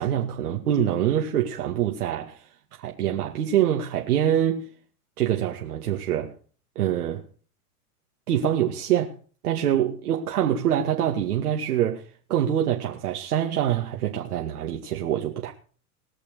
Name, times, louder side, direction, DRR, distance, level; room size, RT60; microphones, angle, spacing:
voice 1, 0.0-2.5 2.8-4.7 5.2-6.3 6.8-7.2 8.3-9.1 9.4-15.5, right 10 dB, 75° right, 2.2 m, -25 dB
21.0 x 7.0 x 6.8 m
hypercardioid pair, 105°, 45 cm